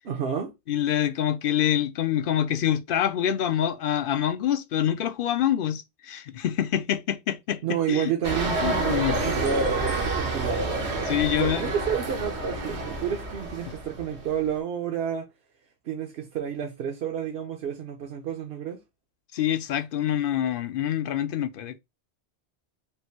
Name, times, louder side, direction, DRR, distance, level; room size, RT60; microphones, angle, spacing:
voice 1, 0.0-0.5 7.6-10.8 11.3-15.3 15.8-18.8, right 7 dB, 70° right, 0.9 m, -30 dB
voice 2, 0.7-7.6 7.9-8.1 8.6-9.5 11.1-11.7 19.3-21.8, left 10 dB, 65° left, 0.7 m, -26 dB
sound 1, 8.2-14.5, right 3 dB, 85° right, 1.4 m, -29 dB
3.5 x 2.6 x 4.3 m
omnidirectional pair, 1.1 m